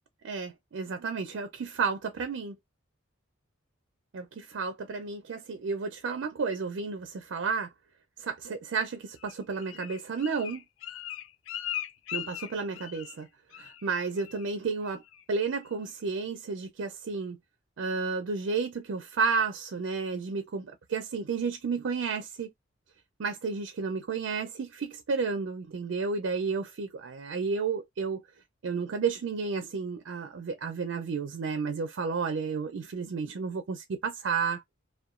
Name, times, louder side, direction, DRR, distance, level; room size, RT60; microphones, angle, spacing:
voice 1, 0.2-2.6 4.1-7.7 8.2-10.6 12.1-13.3 13.6-15.0 15.3-17.4 17.8-22.5 23.2-28.2 28.6-34.6, right 5 dB, 70° right, 0.4 m, -32 dB
Bird, 9.2-13.2 13.5-13.9 14.2-14.5 14.8-15.2 15.6-15.7, left 12 dB, 75° left, 0.3 m, -39 dB
2.8 x 2.2 x 2.4 m
head